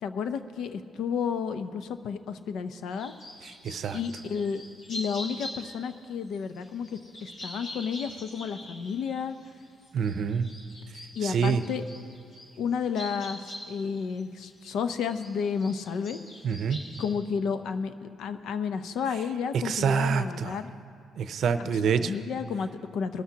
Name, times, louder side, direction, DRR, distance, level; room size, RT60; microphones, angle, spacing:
voice 1, 0.0-3.1 3.9-4.6 4.9-6.9 7.2-9.4 11.1-11.8 12.6-16.2 17.0-20.7 21.6-23.2, left 6 dB, 75° left, 10 dB, 0.6 m, -31 dB
sound 1, 3.0-5.9 6.3-14.7 15.0-17.1, left 1 dB, 60° left, 3.3 m, -43 dB
voice 2, 3.6-4.0 9.9-10.5 11.2-11.6 16.4-16.8 19.6-20.6 21.2-22.1, right 6 dB, 65° right, 11 dB, 0.6 m, -26 dB
21.0 x 13.0 x 2.8 m, 2.4 s
cardioid pair, 90°, 0 cm